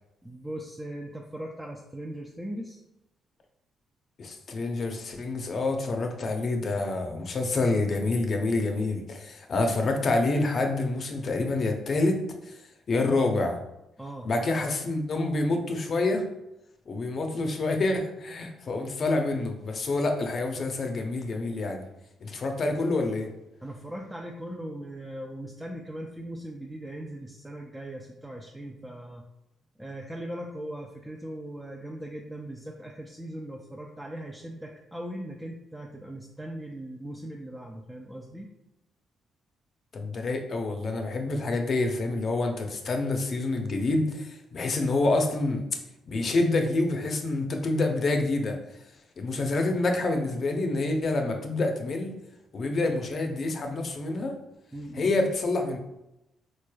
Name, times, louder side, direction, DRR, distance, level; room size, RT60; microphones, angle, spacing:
voice 1, 0.2-2.8 14.0-14.3 23.6-29.2 29.8-38.5 54.7-55.1, right 1 dB, 10° right, 0 dB, 0.4 m, -39 dB
voice 2, 4.2-12.2 12.5-12.6 12.9-13.6 14.2-16.2 16.9-21.8 22.2-23.3 39.9-45.6 46.1-48.6 49.2-52.1 52.5-54.3 54.9-55.8, left 2 dB, 50° left, 4 dB, 0.6 m, -27 dB
4.0 x 3.2 x 2.2 m, 0.88 s
cardioid pair, 90°, 0 cm